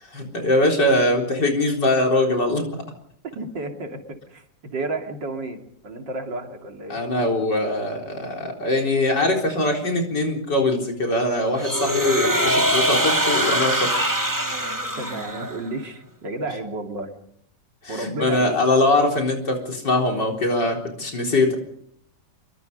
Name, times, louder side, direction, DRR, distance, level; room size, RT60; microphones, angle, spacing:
voice 1, 0.1-2.6 6.9-14.1 17.8-21.5, left 1 dB, 65° left, 1 dB, 4.6 m, -22 dB
voice 2, 3.3-7.0 15.0-17.1 17.9-18.6, right 2 dB, 75° right, 3 dB, 3.4 m, -32 dB
sound 1, 11.6-15.7, right 1 dB, 10° right, 2.6 m, -22 dB
25.5 x 22.5 x 5.5 m, 0.68 s
omnidirectional pair, 2.0 m